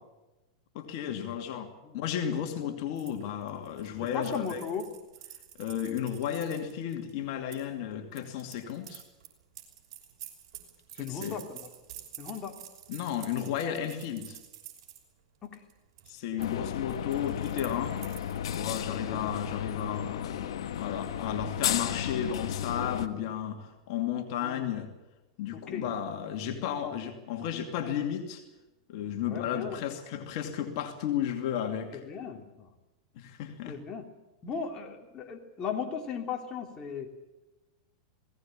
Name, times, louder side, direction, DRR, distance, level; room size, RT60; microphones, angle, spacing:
voice 1, 0.7-1.7 1.9-4.6 5.6-9.0 11.0-11.4 12.9-14.4 16.1-18.0 18.5-20.5 20.8-24.9 25.4-28.4 28.9-32.0 33.1-33.8, left 9 dB, 60° left, 4 dB, 2.6 m, -33 dB
sound 1, 3.0-7.6 8.1-15.0 15.4-15.7 16.0-16.5 16.7-18.9, right 11 dB, 60° right, 6.0 m, -49 dB
voice 2, 4.1-4.8 11.0-11.7 12.2-12.5 15.4-15.6 16.5-16.6 18.9-19.2 24.4-24.7 25.5-25.9 26.5-27.0 29.3-29.8 31.9-32.7 33.7-34.0 34.4-37.1, left 6 dB, 30° left, 2 dB, 3.1 m, -37 dB
sound 2, 16.4-23.1, left 9 dB, 75° left, 1.5 m, -34 dB
19.5 x 17.5 x 9.0 m, 1.1 s
hypercardioid pair, 120°, 3 cm